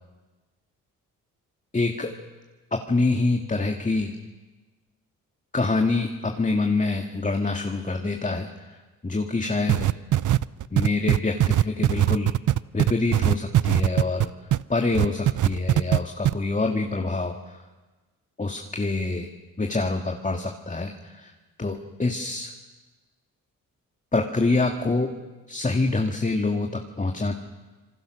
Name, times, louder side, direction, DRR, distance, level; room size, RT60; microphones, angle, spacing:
voice 1, 1.7-2.1 2.7-4.1 5.5-8.5 9.0-9.9 10.7-12.3 12.7-14.3 14.7-17.6 18.4-19.3 19.6-21.3 21.6-22.5 24.1-25.1 25.5-27.3, left 3 dB, 20° left, 3 dB, 2.1 m, -26 dB
sound 1, 9.7-14.6 14.9-16.0 16.2-16.3, right 13 dB, 60° right, 0.7 m, -20 dB
26.5 x 23.0 x 6.5 m, 1.3 s
supercardioid pair, 60°, 35 cm